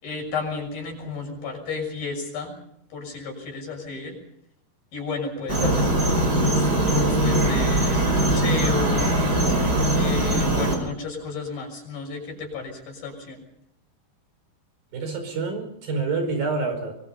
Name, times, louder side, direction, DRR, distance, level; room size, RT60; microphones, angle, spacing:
voice 1, 0.0-2.6 2.9-4.2 4.9-9.2 9.9-13.4, left 3 dB, 65° left, 2 dB, 8.3 m, -32 dB
sound 1, 5.5-10.8, right 1 dB, 25° right, 5.1 m, -21 dB
voice 2, 5.6-5.9 14.9-16.9, right 4 dB, 65° right, 6 dB, 6.7 m, -27 dB
24.5 x 23.5 x 5.7 m, 0.73 s
omnidirectional pair, 4.5 m